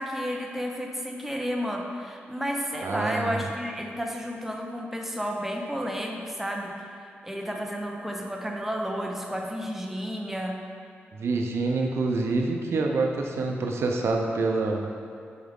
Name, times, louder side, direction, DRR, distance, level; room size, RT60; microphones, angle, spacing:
voice 1, 0.0-6.8 7.2-10.6, equal, 5° right, 1 dB, 0.8 m, -31 dB
voice 2, 2.8-3.4 11.1-14.8, right 3 dB, 75° right, 1 dB, 0.6 m, -26 dB
7.1 x 4.7 x 3.6 m, 2.5 s
cardioid pair, 65°, 4 cm